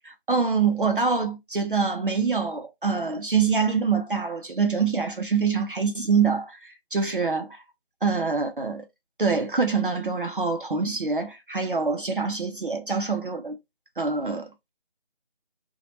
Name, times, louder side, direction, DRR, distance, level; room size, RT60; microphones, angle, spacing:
voice 1, 0.0-7.6 8.0-8.9 9.2-13.6 14.0-14.7, right 5 dB, 55° right, 0.4 m, -25 dB
2.9 x 2.2 x 2.7 m
figure-of-eight pair, 165°, 31 cm